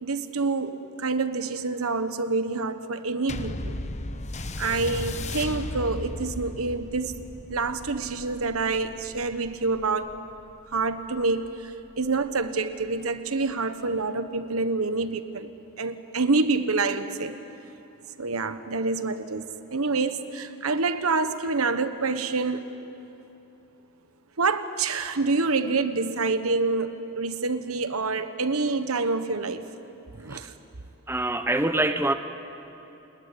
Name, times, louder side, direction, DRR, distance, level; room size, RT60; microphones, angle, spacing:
voice 1, 0.0-3.8 4.6-7.2 7.5-10.2 10.7-17.4 18.2-22.7 24.4-29.7 30.1-30.5, right 3 dB, 75° right, 10 dB, 1.2 m, -27 dB
sound 1, 3.3-12.1 12.8-12.9, left 2 dB, 35° left, 1.0 m, -36 dB
voice 2, 31.1-32.1, right 2 dB, 10° right, 8 dB, 0.9 m, -25 dB
29.5 x 20.0 x 9.7 m, 3.0 s
head